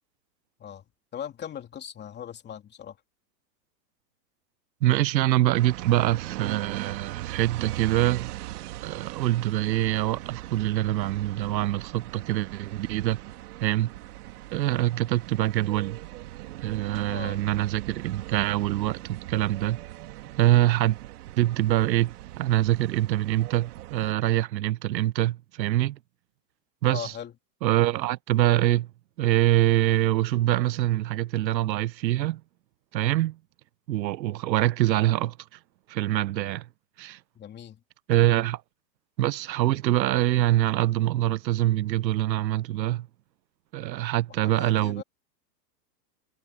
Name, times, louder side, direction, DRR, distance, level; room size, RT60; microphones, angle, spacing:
voice 1, 1.1-3.0 17.1-17.4 26.9-27.3 37.3-37.8 44.4-45.0, left 9 dB, 20° left, 3.1 m, -39 dB
voice 2, 4.8-8.3 8.8-13.2 13.6-13.9 14.5-16.0 16.6-19.8 20.4-21.0 21.4-26.0 26.8-27.1 27.6-28.9 29.2-32.4 32.9-33.4 33.9-35.4 35.9-36.7 37.0-37.2 38.1-38.6 39.2-43.1 43.7-45.0, right 14 dB, 90° right, 0.8 m, -24 dB
sound 1, 5.5-24.1, right 16 dB, 65° right, 2.7 m, -40 dB
supercardioid pair, 145°, 50 cm